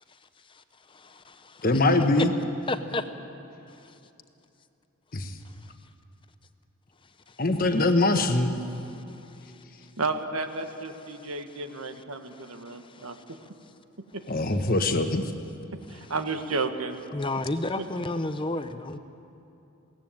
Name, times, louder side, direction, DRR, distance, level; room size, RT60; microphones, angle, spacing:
voice 1, 0.9-1.6 2.2-2.3 2.7-3.0 12.7-13.1 17.1-19.0, left 2 dB, 25° left, 10 dB, 0.7 m, -31 dB
voice 2, 1.6-2.3 5.1-5.3 7.4-8.5 14.3-15.3, left 2 dB, 40° left, 6 dB, 1.3 m, -23 dB
voice 3, 10.0-13.4 14.1-14.2 15.7-17.0 17.8-17.9 18.8-19.0, right 3 dB, 85° right, 7 dB, 1.4 m, -32 dB
22.0 x 17.5 x 9.1 m, 2.8 s
head